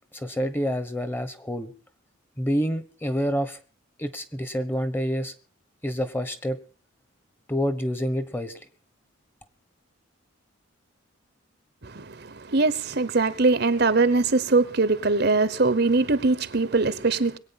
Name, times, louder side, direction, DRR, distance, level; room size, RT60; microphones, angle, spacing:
voice 1, 0.1-1.7 2.4-3.6 4.0-5.3 5.8-6.6 7.5-8.6, equal, 10° left, 1.1 m, -27 dB
voice 2, 11.8-17.4, right 3 dB, 50° right, 0.9 m, -22 dB
22.0 x 8.9 x 5.7 m
head